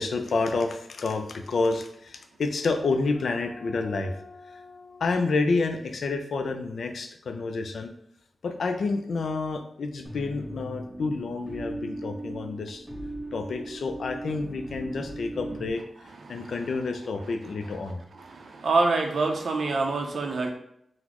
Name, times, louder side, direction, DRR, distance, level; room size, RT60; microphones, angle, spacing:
voice 1, 0.0-7.9 8.4-12.8 13.3-15.8 16.3-18.0, left 3 dB, 80° left, 6 dB, 0.3 m, -29 dB
sound 1, 10.0-15.7, right 1 dB, ahead, 1.0 m, -38 dB
voice 2, 16.2-16.5 18.1-20.5, right 3 dB, 75° right, 3 dB, 0.5 m, -26 dB
3.9 x 2.0 x 2.9 m, 0.73 s
wide cardioid pair, 75°, 0 cm